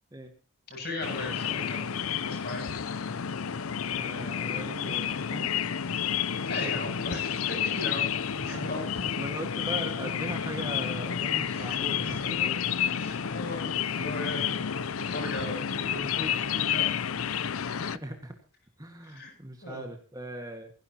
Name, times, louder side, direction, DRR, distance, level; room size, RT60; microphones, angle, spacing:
voice 1, 0.7-2.7 6.4-8.1 8.4-8.8 11.5-11.8 12.0-12.2 12.9-16.8 19.0-19.3 19.6-19.8, left 2 dB, 50° left, 1 dB, 7.6 m, -37 dB
sound 1, 1.0-18.0, left 8 dB, 85° left, 0.6 m, -30 dB
voice 2, 3.9-5.7 8.4-12.6 17.7-18.4 18.8-20.7, right 1 dB, 15° right, 5 dB, 1.7 m, -40 dB
16.5 x 16.0 x 2.9 m, 0.38 s
head